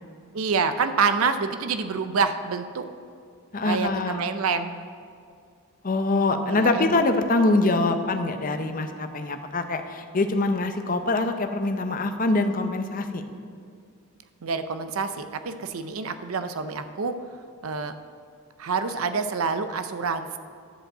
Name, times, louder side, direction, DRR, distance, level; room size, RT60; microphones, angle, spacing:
voice 1, 0.3-2.9 3.6-4.8 6.4-7.0 14.4-17.1 17.6-17.9 18.6-20.4, right 5 dB, 80° right, 10 dB, 0.6 m, -27 dB
voice 2, 3.5-4.2 5.8-13.2, left 2 dB, 40° left, 7 dB, 0.6 m, -24 dB
11.0 x 5.3 x 7.5 m, 2.3 s
head